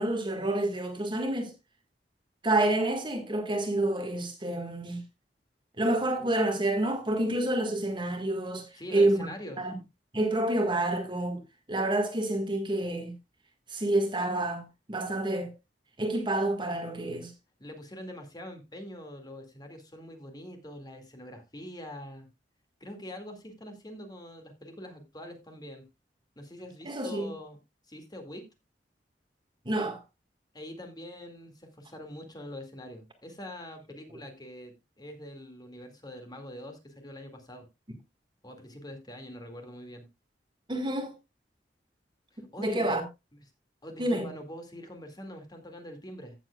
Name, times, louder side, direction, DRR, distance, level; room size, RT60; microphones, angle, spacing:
voice 1, 0.0-1.5 2.4-5.0 5.8-8.6 8.9-9.3 9.6-9.7 10.1-11.4 11.7-13.1 13.7-15.5 16.0-17.3 26.8-27.3 29.6-30.0 40.7-41.1 42.6-43.0 44.0-44.3, right 1 dB, 25° right, 1.6 m, -28 dB
voice 2, 8.7-9.6 17.6-22.3 22.8-25.9 26.4-27.6 27.9-28.4 30.5-37.7 38.4-40.0 42.3-43.0 43.3-43.4 43.8-46.3, left 1 dB, 25° left, 2.1 m, -44 dB
15.5 x 7.4 x 2.3 m
head